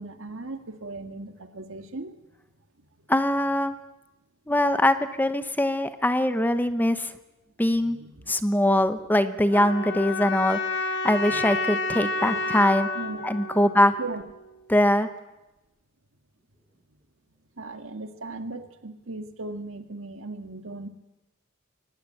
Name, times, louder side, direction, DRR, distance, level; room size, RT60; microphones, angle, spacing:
voice 1, 0.0-2.2 7.8-8.3 11.3-11.4 12.2-12.5 12.9-13.7 14.0-14.2 17.6-20.9, right 2 dB, 70° right, 7 dB, 1.9 m, -38 dB
voice 2, 3.1-3.8 4.5-7.1 7.6-8.0 8.3-12.9 13.2-13.9 14.7-15.1, left 1 dB, 10° left, 11 dB, 0.8 m, -22 dB
sound 1, 9.5-14.5, left 3 dB, 60° left, 1.6 m, -30 dB
22.5 x 18.5 x 9.1 m, 1.0 s
head